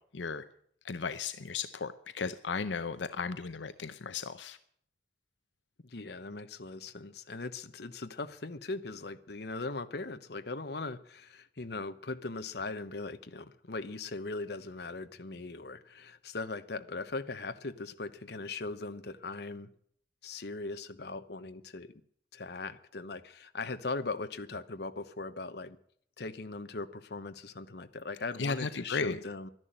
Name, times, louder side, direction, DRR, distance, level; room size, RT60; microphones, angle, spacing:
voice 1, 0.1-0.5 0.8-4.6 28.4-29.2, left 5 dB, 85° left, 12 dB, 0.7 m, -35 dB
voice 2, 5.8-19.7 20.2-21.9 22.3-25.8 26.2-29.5, left 3 dB, 65° left, 10 dB, 1.0 m, -39 dB
12.5 x 11.0 x 8.8 m, 0.63 s
head